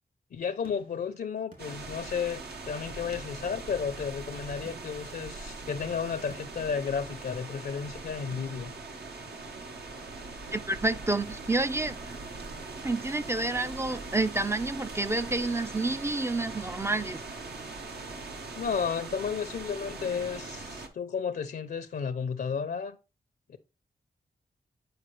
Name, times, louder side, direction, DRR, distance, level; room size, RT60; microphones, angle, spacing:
voice 1, 0.3-8.7 18.1-18.2 18.6-23.0 23.5-23.6, left 6 dB, 75° left, 0.6 m, -33 dB
sound 1, 0.6-2.5 2.9-4.0 4.7-7.7 8.3-9.7 10.5-11.1 12.1-12.8 13.7-14.5 15.3-15.9, right 3 dB, 60° right, 3.1 m, -58 dB
sound 2, 1.6-20.9, right 3 dB, 80° right, 1.1 m, -41 dB
voice 2, 10.5-12.2 12.8-17.2, right 2 dB, 15° right, 0.4 m, -29 dB
8.8 x 4.7 x 3.2 m
cardioid pair, 65°, 16 cm